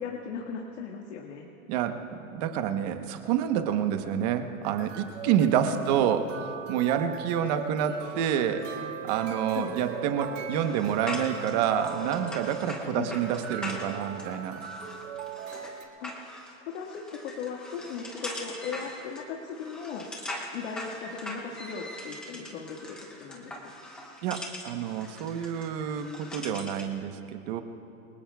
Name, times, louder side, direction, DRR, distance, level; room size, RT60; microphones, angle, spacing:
voice 1, 0.0-1.5 5.7-5.8 9.5-9.8 12.9-13.1 16.0-16.1 16.6-20.1 20.5-23.8, left 6 dB, 55° left, -1 dB, 1.8 m, -37 dB
voice 2, 1.7-6.3 6.7-14.6 24.2-27.6, right 9 dB, 30° right, 7 dB, 1.0 m, -28 dB
sound 1, 4.6-15.8, right 7 dB, 60° right, 1.8 m, -40 dB
Wind instrument woodwind instrument, 8.4-12.8, right 10 dB, 85° right, 2.9 m, -42 dB
sound 2, 10.6-26.9, left 1 dB, ahead, 0.4 m, -42 dB
28.0 x 22.5 x 2.3 m, 2.9 s
hypercardioid pair, 160°, 42 cm